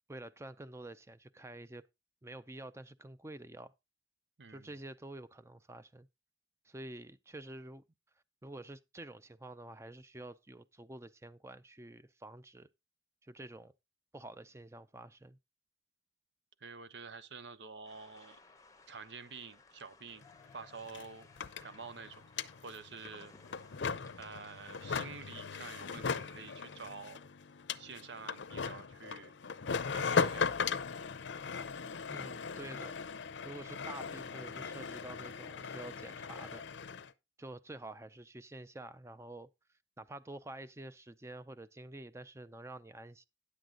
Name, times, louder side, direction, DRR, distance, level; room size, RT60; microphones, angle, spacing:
voice 1, 0.1-1.8 2.2-3.7 4.5-6.1 6.6-7.8 8.4-12.7 13.2-13.7 14.1-15.4 32.1-33.0 33.4-36.6 37.4-39.5 40.0-43.3, right 2 dB, 15° right, 0.5 m, -48 dB
voice 2, 4.4-4.7 16.6-18.4 18.9-20.2 20.5-21.3 21.6-22.2 22.6-23.3 24.2-27.2 27.8-29.3 29.9-30.6, right 5 dB, 75° right, 0.8 m, -48 dB
sound 1, 17.8-27.0, left 4 dB, 20° left, 0.7 m, -60 dB
sound 2, 20.2-20.3 20.5-37.1, left 5 dB, 80° left, 0.6 m, -38 dB
10.0 x 7.8 x 3.8 m
head